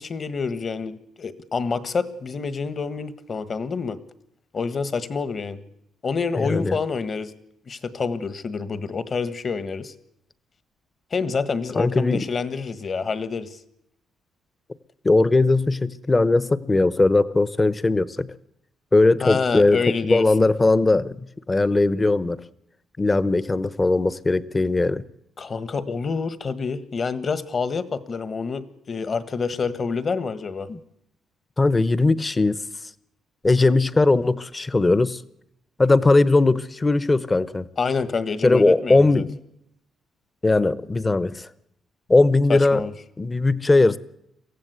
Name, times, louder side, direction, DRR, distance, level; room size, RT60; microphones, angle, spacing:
voice 1, 0.0-4.0 4.5-5.6 6.0-7.3 7.7-9.9 11.1-13.6 19.2-20.5 25.4-30.7 37.8-39.2 42.5-42.9, left 5 dB, 40° left, 1.5 m, -27 dB
voice 2, 6.3-6.8 11.8-12.2 15.0-18.3 18.9-22.4 23.0-25.0 30.7-30.8 31.6-32.6 33.4-35.2 35.8-37.7 38.4-39.4 40.4-41.5 42.1-42.8 43.2-44.0, left 2 dB, 20° left, 0.9 m, -19 dB
23.5 x 15.5 x 8.2 m
cardioid pair, 90°, 0 cm